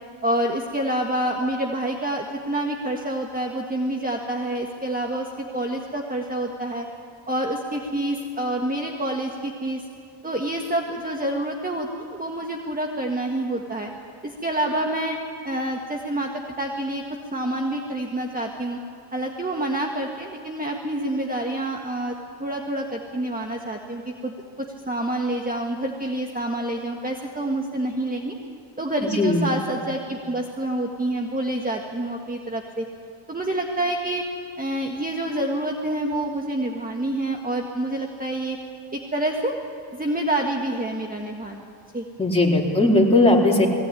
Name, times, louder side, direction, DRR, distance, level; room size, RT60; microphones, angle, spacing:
voice 1, 0.2-6.9 7.3-9.8 10.2-13.9 14.2-15.2 15.4-16.3 16.6-17.0 17.3-18.8 19.1-22.1 22.4-28.3 28.8-32.9 33.3-34.2 34.6-38.6 38.9-39.5 39.9-41.6 41.9-42.1, right 1 dB, 15° right, 2 dB, 1.6 m, -27 dB
voice 2, 29.0-29.4 42.2-43.7, left 2 dB, 10° left, -2 dB, 4.1 m, -18 dB
20.5 x 17.0 x 9.8 m, 2.3 s
cardioid pair, 90°, 50 cm